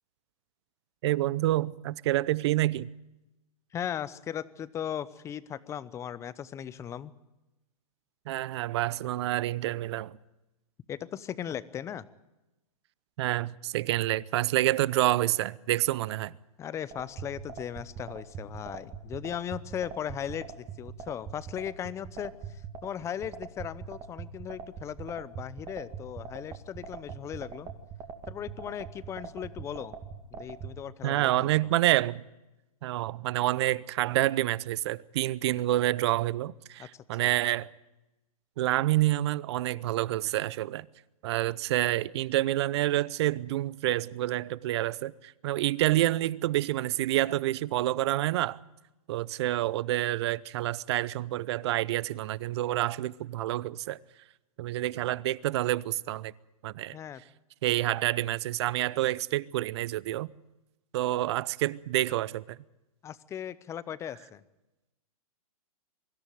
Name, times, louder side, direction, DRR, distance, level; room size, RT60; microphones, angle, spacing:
voice 1, 1.0-2.9 8.3-10.2 13.2-16.4 31.0-32.2 32.8-37.7 38.6-40.9 41.2-48.6 49.1-54.0 54.6-56.3 56.6-57.0 57.6-60.3 60.9-62.6, right 15 dB, 45° right, 0.7 m, -28 dB
voice 2, 3.7-7.1 10.9-12.0 16.6-27.7 28.3-30.0 30.3-31.6 36.8-36.9 37.2-37.3 56.9-57.2 63.0-64.4, left 9 dB, 15° left, 0.7 m, -37 dB
sound 1, 16.9-30.7, right 7 dB, 25° right, 2.2 m, -40 dB
24.0 x 14.0 x 9.2 m
hypercardioid pair, 145°, 19 cm